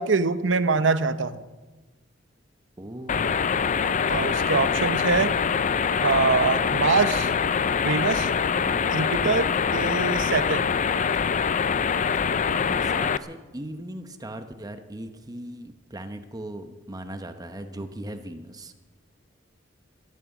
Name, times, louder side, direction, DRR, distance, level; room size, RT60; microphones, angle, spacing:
voice 1, 0.0-1.4 4.1-5.3 6.0-7.3 7.8-8.3 8.9-9.5 9.7-10.6, right 4 dB, 75° right, 13 dB, 0.8 m, -24 dB
voice 2, 2.8-3.5 8.5-8.8 9.4-9.8 12.4-18.7, right 1 dB, 20° right, 8 dB, 0.9 m, -39 dB
sound 1, 3.1-13.2, left 6 dB, 40° left, 0.4 m, -24 dB
15.0 x 13.0 x 7.1 m, 1.2 s
head